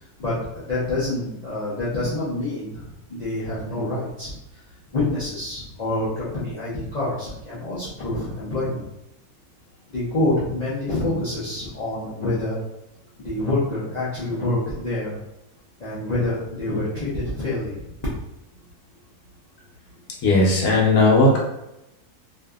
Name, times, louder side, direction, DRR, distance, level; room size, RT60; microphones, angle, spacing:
voice 1, 0.2-4.6 4.9-8.8 9.9-12.6 13.2-15.2 15.8-17.8, left 2 dB, 55° left, -9 dB, 0.4 m, -27 dB
voice 2, 20.2-21.4, left 2 dB, 80° left, -3 dB, 1.1 m, -16 dB
2.7 x 2.5 x 2.3 m, 0.88 s
omnidirectional pair, 1.6 m